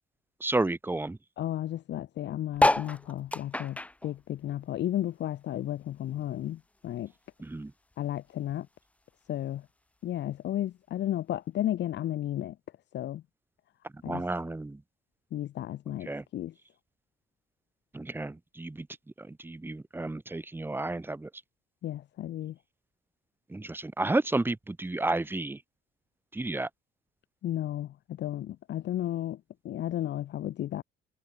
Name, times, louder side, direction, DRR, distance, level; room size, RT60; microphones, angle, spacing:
voice 1, 0.4-1.2 7.4-7.7 13.9-14.8 16.1-16.2 17.9-18.9 19.2-21.3 23.5-25.6 26.3-26.7, right 2 dB, 10° right, 3.3 m, -31 dB
voice 2, 1.4-7.1 8.0-8.7 9.3-9.6 10.0-12.6 12.9-13.2 14.0-14.2 15.3-16.5 21.8-22.6 27.4-30.8, left 12 dB, 60° left, 2.4 m, -33 dB
sound 1, 2.5-5.3 5.6-7.2 7.7-7.8 7.9-8.0 8.2-8.6 9.4-9.5, left 1 dB, 5° left, 1.0 m, -29 dB
cardioid pair, 160°, 20 cm